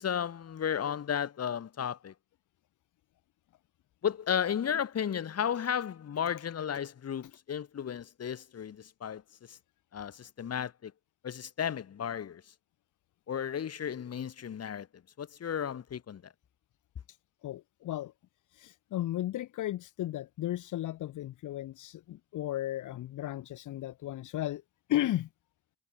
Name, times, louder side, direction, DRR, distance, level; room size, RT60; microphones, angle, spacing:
voice 1, 0.0-2.1 4.0-9.2 9.5-9.6 9.9-10.9 11.2-12.4 13.3-14.9 15.2-16.3, left 8 dB, 55° left, 4.5 m, -34 dB
voice 2, 17.4-18.1 18.5-24.6 24.9-25.3, left 14 dB, 80° left, 2.8 m, -34 dB
cardioid pair, 90°, 30 cm